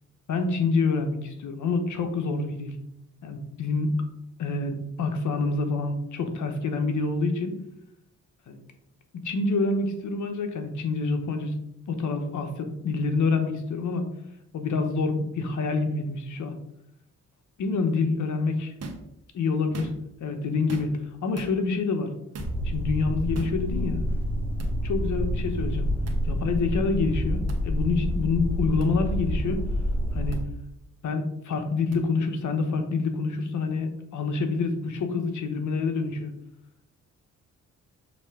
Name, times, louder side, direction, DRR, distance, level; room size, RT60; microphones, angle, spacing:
voice 1, 0.3-2.7 3.2-3.9 4.4-7.6 8.5-8.6 9.1-11.5 11.9-14.1 14.5-16.5 17.6-18.7 19.3-19.9 20.2-20.9 21.2-22.1 22.6-24.0 24.8-25.9 26.3-29.7 30.1-30.4 31.0-36.3, left 4 dB, 70° left, 6 dB, 1.2 m, -27 dB
sound 1, 18.8-19.1 19.6-20.2 20.7-21.1 21.3-21.5 22.3-22.6 23.3-23.6 24.6-24.7 26.0-26.2 27.5-27.6 28.8-28.9 30.3-30.4 31.9-32.0, right 2 dB, 55° right, 1.2 m, -38 dB
sound 2, 22.4-30.4, equal, 5° left, 1.0 m, -28 dB
6.6 x 3.4 x 5.0 m, 0.78 s
cardioid pair, 85°, 31 cm